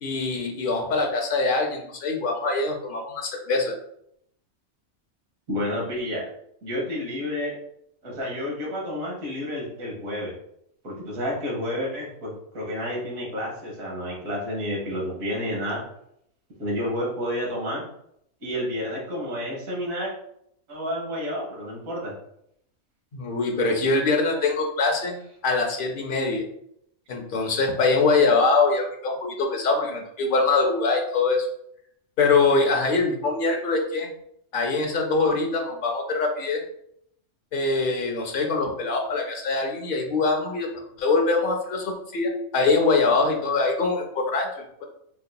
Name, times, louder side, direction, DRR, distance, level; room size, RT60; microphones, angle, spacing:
voice 1, 0.0-3.7 23.1-26.4 27.1-31.5 32.2-34.1 34.5-36.6 37.5-40.7 41.0-44.8, left 3 dB, 65° left, 2 dB, 0.5 m, -23 dB
voice 2, 5.5-6.2 6.6-7.6 8.0-10.3 10.8-15.8 16.6-17.8 18.4-20.1 20.7-22.1, left 1 dB, 70° right, -3 dB, 1.6 m, -30 dB
4.4 x 2.7 x 2.2 m, 0.73 s
omnidirectional pair, 1.5 m